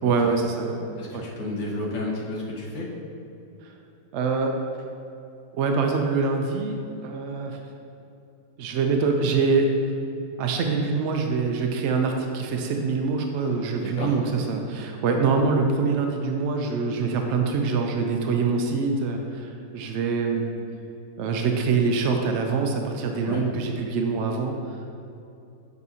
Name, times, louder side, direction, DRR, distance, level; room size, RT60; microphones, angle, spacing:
voice 1, 0.0-0.8 1.1-1.3 3.6-3.7 4.1-4.5 5.5-7.6 8.6-9.7 10.4-20.5 21.2-24.6, right 4 dB, 75° right, 3 dB, 0.6 m, -24 dB
voice 2, 1.0-2.9 13.7-14.1 23.2-23.4, left 2 dB, 85° left, -4 dB, 1.8 m, -32 dB
8.2 x 5.3 x 2.7 m, 2.8 s
omnidirectional pair, 1.8 m